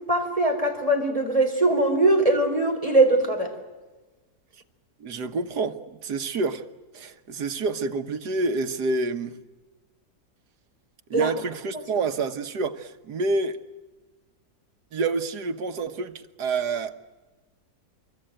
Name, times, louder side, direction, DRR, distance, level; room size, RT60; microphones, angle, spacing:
voice 1, 0.1-3.5 11.1-11.3, right 2 dB, 20° right, 3.8 m, -21 dB
voice 2, 5.0-6.6 6.9-9.4 11.1-13.6 14.9-16.9, right 3 dB, 90° right, 1.9 m, -28 dB
26.0 x 23.0 x 9.1 m
omnidirectional pair, 1.7 m